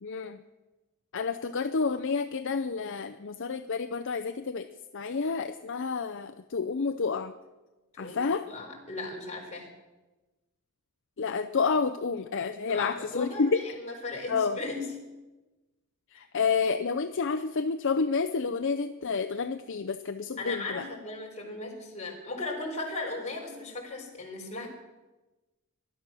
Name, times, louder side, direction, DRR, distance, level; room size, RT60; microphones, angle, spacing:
voice 1, 0.0-0.4 1.1-4.7 4.9-7.3 8.0-8.5 11.2-13.6 14.3-14.6 16.1-20.8, left 5 dB, 60° left, 9 dB, 0.6 m, -29 dB
voice 2, 8.0-9.7 12.7-15.0 16.1-16.3 20.4-24.7, left 2 dB, 30° left, -1 dB, 4.2 m, -37 dB
19.5 x 12.0 x 6.2 m, 1.1 s
head